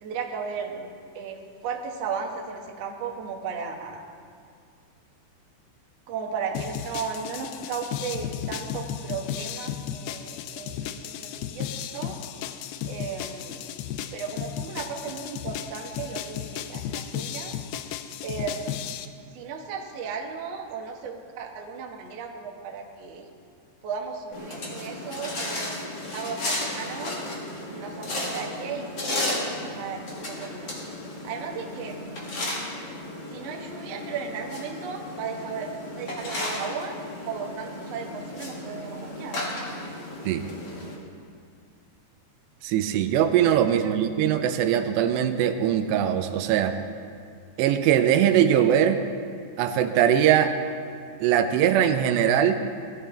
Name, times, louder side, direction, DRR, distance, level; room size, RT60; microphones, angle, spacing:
voice 1, 0.0-0.9 1.1-4.0 6.1-11.7 11.9-12.2 12.9-13.6 14.1-17.5 18.2-18.8 19.3-23.3 23.8-27.2 27.7-30.8 31.2-32.0 33.3-37.0 37.3-39.4 43.8-43.9, right 5 dB, 70° right, 0 dB, 1.5 m, -35 dB
sound 1, 6.5-19.1, left 9 dB, 80° left, 2.3 m, -34 dB
sound 2, 24.3-40.9, left 1 dB, 50° left, 1.2 m, -34 dB
voice 2, 42.6-46.8 47.6-49.0 49.6-50.6 51.2-52.6, right 10 dB, 85° right, 8 dB, 2.9 m, -21 dB
19.0 x 12.0 x 3.4 m, 2.2 s
omnidirectional pair, 4.9 m